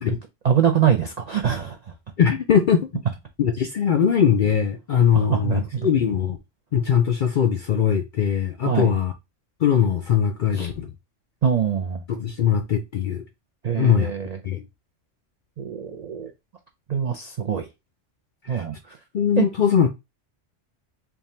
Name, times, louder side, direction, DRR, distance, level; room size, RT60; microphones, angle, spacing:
voice 1, 0.4-1.8 5.1-5.9 8.6-8.9 10.5-10.7 11.4-12.0 13.6-14.4 15.6-16.3 16.9-17.7 18.5-19.0 19.4-19.5, right 8 dB, 65° right, 0.4 m, -23 dB
voice 2, 2.2-2.9 3.4-6.4 6.7-9.1 9.6-10.9 12.1-13.2 13.8-14.1 14.4-14.6 18.4-18.7 19.1-19.9, left 8 dB, 65° left, 0.5 m, -21 dB
3.5 x 2.4 x 4.1 m
omnidirectional pair, 1.3 m